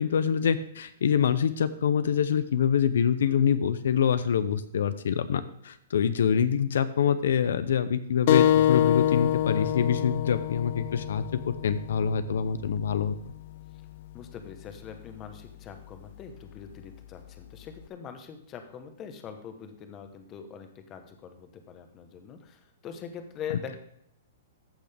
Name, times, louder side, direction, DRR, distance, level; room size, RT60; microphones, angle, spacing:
voice 1, 0.0-13.1, left 7 dB, 75° left, 12 dB, 0.6 m, -25 dB
sound 1, 8.3-13.4, left 12 dB, 45° left, 0.3 m, -26 dB
voice 2, 14.1-23.7, left 7 dB, 20° left, 7 dB, 1.0 m, -43 dB
14.0 x 6.3 x 3.5 m, 0.74 s
hypercardioid pair, 165°, 0 cm